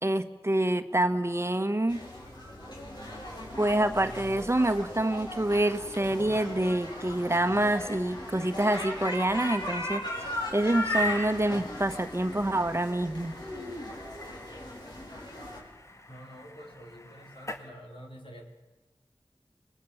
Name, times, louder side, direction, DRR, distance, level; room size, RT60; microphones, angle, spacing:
voice 1, 0.0-2.0 3.6-13.4, right 1 dB, 30° right, 8 dB, 1.3 m, -27 dB
sound 1, 1.9-15.6, left 1 dB, 55° left, 5.4 m, -38 dB
sound 2, 7.8-17.7, left 1 dB, 30° left, 1.8 m, -40 dB
voice 2, 16.1-18.4, equal, 70° left, 1 dB, 4.5 m, -47 dB
26.5 x 21.0 x 7.2 m, 1.1 s
wide cardioid pair, 60°, 9 cm